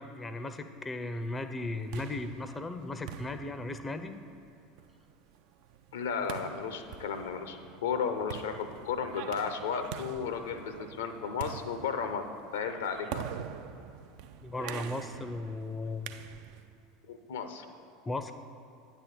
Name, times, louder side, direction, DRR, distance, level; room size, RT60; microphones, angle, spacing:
voice 1, 0.0-4.1 14.4-16.1 18.1-18.3, left 2 dB, 15° left, 9 dB, 0.5 m, -36 dB
sound 1, 1.6-16.7, right 9 dB, 55° right, 0.4 m, -45 dB
voice 2, 5.9-12.2 12.5-13.2 17.1-17.6, left 6 dB, 70° left, 8 dB, 0.6 m, -34 dB
8.9 x 4.1 x 7.1 m, 2.7 s
figure-of-eight pair, 75°, 0 cm